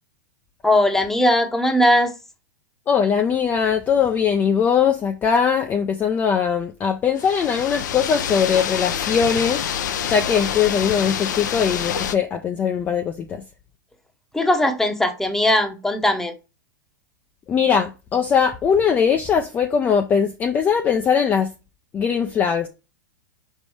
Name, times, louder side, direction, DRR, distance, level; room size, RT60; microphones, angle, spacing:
voice 1, 0.6-2.1 14.3-16.3, left 1 dB, 5° left, 0.9 m, -19 dB
voice 2, 2.9-9.6 10.0-13.4 17.5-21.5 21.9-22.7, left 7 dB, 20° left, 0.5 m, -20 dB
sound 1, 7.2-12.2, left 8 dB, 75° left, 0.7 m, -26 dB
5.5 x 4.1 x 4.8 m
hypercardioid pair, 140°, 10 cm